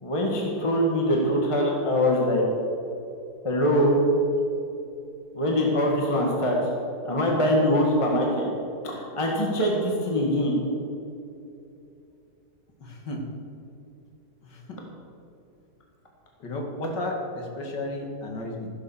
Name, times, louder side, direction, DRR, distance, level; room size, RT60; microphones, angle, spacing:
voice 1, 0.0-2.4 3.4-4.0 5.3-6.5 7.1-8.5 8.8-10.5, equal, 20° left, -1 dB, 1.6 m, -23 dB
voice 2, 12.8-13.2 14.4-14.8 16.4-18.7, left 1 dB, 90° left, 1 dB, 2.6 m, -33 dB
14.5 x 7.4 x 7.2 m, 2.7 s
omnidirectional pair, 1.8 m